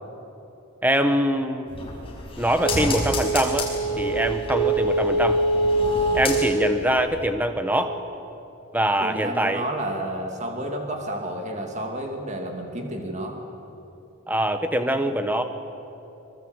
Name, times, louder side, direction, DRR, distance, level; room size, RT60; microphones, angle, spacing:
voice 1, 0.8-1.7 2.4-3.7 4.0-5.4 6.1-8.0 8.7-9.6 14.3-15.4, right 1 dB, 10° right, 7 dB, 1.3 m, -23 dB
sound 1, 1.7-6.8 7.2-7.3, right 1 dB, 25° left, 5.4 m, -24 dB
voice 2, 9.0-13.4, right 1 dB, 30° right, 2 dB, 2.4 m, -31 dB
24.5 x 24.0 x 8.1 m, 3.0 s
head